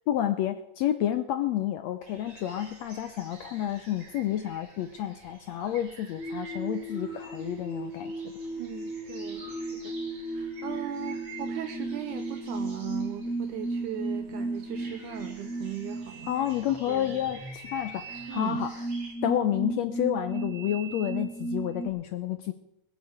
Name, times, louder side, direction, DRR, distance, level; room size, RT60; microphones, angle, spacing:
voice 1, 0.1-8.3 16.3-18.9 19.2-22.5, left 11 dB, 75° left, 9 dB, 1.6 m, -30 dB
sound 1, 2.0-19.1, right 3 dB, 45° right, 4.5 m, -51 dB
sound 2, 6.2-21.9, right 2 dB, 5° left, 1.5 m, -35 dB
voice 2, 8.6-9.9 10.3-16.3 16.9-17.2 18.3-18.6, right 12 dB, 75° right, 7 dB, 2.2 m, -38 dB
20.5 x 7.2 x 7.9 m, 0.87 s
omnidirectional pair, 3.8 m